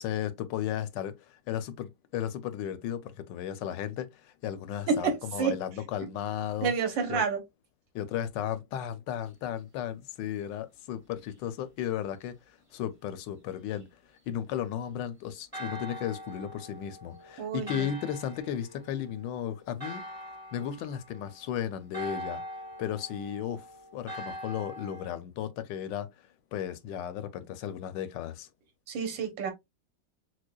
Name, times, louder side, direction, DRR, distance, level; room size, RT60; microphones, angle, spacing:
voice 1, 0.0-6.7 7.1-7.2 7.9-12.4 12.7-13.8 14.3-20.0 20.5-22.4 22.8-23.7 23.9-26.1 26.5-28.5, left 10 dB, 80° left, 1.2 m, -35 dB
voice 2, 4.9-5.6 6.6-7.4 17.4-17.9 28.9-29.5, right 5 dB, 85° right, 1.8 m, -29 dB
Church bell, 15.5-25.2, equal, 25° right, 0.8 m, -43 dB
6.3 x 2.1 x 2.2 m
omnidirectional pair, 2.0 m